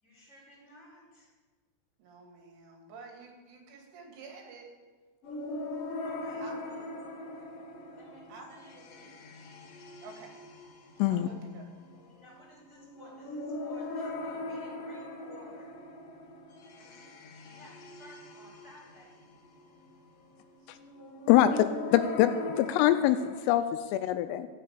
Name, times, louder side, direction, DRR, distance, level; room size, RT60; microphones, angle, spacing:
voice 1, 0.0-1.3 6.0-6.9 8.0-9.3 11.9-15.8 16.8-17.1 17.4-19.2, left 1 dB, 15° left, -6 dB, 4.6 m, -55 dB
voice 2, 2.0-4.7 6.4-6.6 8.3-8.5 10.0-10.4 11.1-11.8 21.2-21.5, right 4 dB, 70° right, 1 dB, 4.7 m, -49 dB
sound 1, 5.2-23.4, left 2 dB, 60° left, 2.6 m, -41 dB
voice 3, 21.3-21.7 21.9-24.5, left 12 dB, 90° left, 9 dB, 3.2 m, -24 dB
13.5 x 7.6 x 8.5 m, 1.4 s
omnidirectional pair, 5.8 m